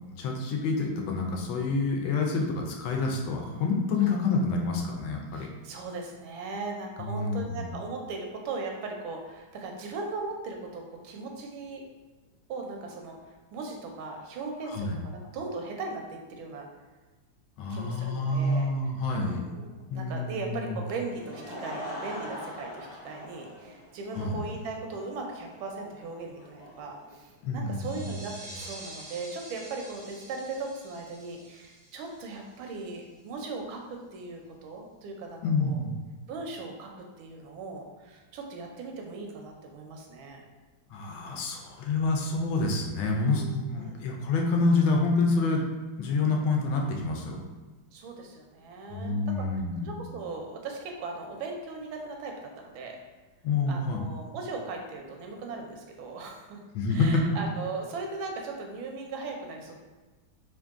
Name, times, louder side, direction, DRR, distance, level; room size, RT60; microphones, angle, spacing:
voice 1, 0.2-5.5 7.0-7.7 14.6-15.0 17.6-19.4 19.9-20.8 24.1-24.4 27.4-28.2 35.4-36.0 40.9-45.7 46.0-47.4 48.9-50.0 53.4-54.1 56.7-57.2, left 3 dB, 85° left, 1 dB, 1.4 m, -28 dB
voice 2, 5.3-11.8 12.5-16.7 17.7-18.7 19.2-35.8 36.3-40.4 43.3-44.1 47.9-53.0 53.7-56.6 56.9-59.8, right 3 dB, 85° right, 2 dB, 1.4 m, -38 dB
Laughter / Crowd, 21.0-27.9, equal, 50° left, 0.7 m, -43 dB
sound 1, 27.7-33.0, right 1 dB, 50° right, 0.6 m, -47 dB
3.7 x 2.5 x 3.5 m, 1.2 s
omnidirectional pair, 2.1 m